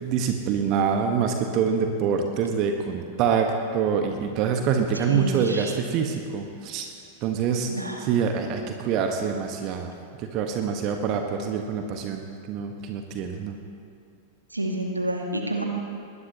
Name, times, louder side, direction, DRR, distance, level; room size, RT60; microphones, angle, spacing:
voice 1, 0.0-6.9 7.2-9.9 10.2-13.6, right 6 dB, 40° right, 4 dB, 1.3 m, -26 dB
voice 2, 5.1-5.7 7.7-8.0 14.5-15.6, right 1 dB, 80° right, 1 dB, 2.1 m, -29 dB
21.0 x 19.5 x 2.9 m, 2.3 s
figure-of-eight pair, 90°, 0 cm